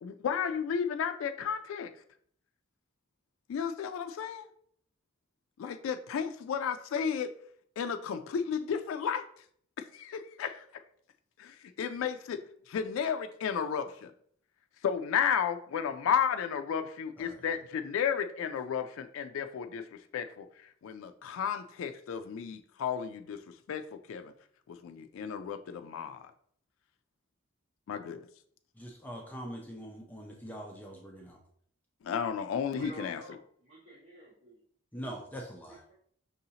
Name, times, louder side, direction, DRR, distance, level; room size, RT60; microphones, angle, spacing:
voice 1, 0.0-1.9 3.5-4.5 5.6-7.3 7.8-9.2 9.9-10.6 11.4-14.1 14.8-19.8 20.1-24.3 24.7-26.3 27.9-28.2 32.0-33.2, left 7 dB, 75° left, 7 dB, 0.3 m, -33 dB
voice 2, 28.8-31.4 34.9-35.9, equal, 10° left, 0 dB, 0.5 m, -43 dB
voice 3, 32.6-34.6 35.7-35.9, right 2 dB, 60° right, -10 dB, 1.4 m, -51 dB
5.5 x 2.7 x 2.8 m, 0.62 s
head